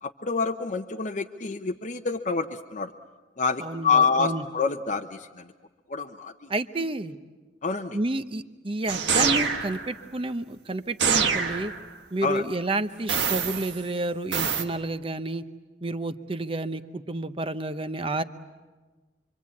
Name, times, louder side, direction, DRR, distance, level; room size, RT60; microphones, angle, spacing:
voice 1, 0.0-2.9 3.4-5.5 5.9-6.5 7.6-8.0 12.2-12.4, left 5 dB, 45° left, 4 dB, 0.8 m, -27 dB
voice 2, 3.6-4.4 6.5-7.2 7.9-11.7 12.1-15.4 15.8-18.2, right 2 dB, 30° right, 10 dB, 0.9 m, -30 dB
sound 1, 8.9-9.9 11.0-11.8 13.1-13.8 14.3-14.6, right 6 dB, 80° right, 1.6 m, -25 dB
26.5 x 25.0 x 8.5 m, 1.3 s
head